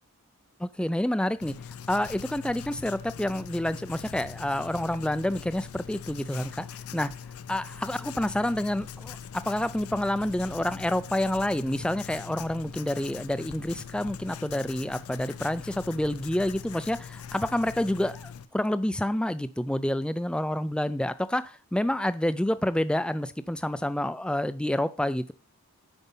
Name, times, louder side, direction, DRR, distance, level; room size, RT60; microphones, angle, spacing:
voice 1, 0.6-1.5 1.9-6.7 6.9-7.1 7.5-25.3, left 1 dB, 5° left, 0.3 m, -28 dB
Writing, 1.4-18.5, left 7 dB, 80° left, 0.5 m, -42 dB
8.0 x 5.2 x 5.4 m
head